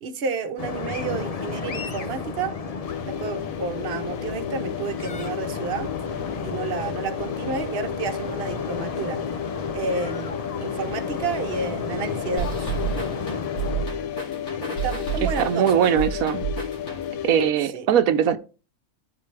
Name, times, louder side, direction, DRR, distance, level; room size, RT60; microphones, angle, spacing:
voice 1, 0.0-2.5 3.1-5.9 6.4-9.2 9.7-12.7 14.8-15.7 17.7-17.9, right 4 dB, 50° right, 1.1 m, -30 dB
sound 1, 0.6-13.9, left 4 dB, 40° left, 0.6 m, -33 dB
sound 2, 2.8-17.5, left 9 dB, 85° left, 1.2 m, -33 dB
sound 3, 12.4-17.3, right 6 dB, 60° left, 2.7 m, -31 dB
voice 2, 15.2-16.4 17.2-18.4, right 9 dB, 85° right, 1.1 m, -21 dB
13.0 x 4.5 x 3.3 m
omnidirectional pair, 1.4 m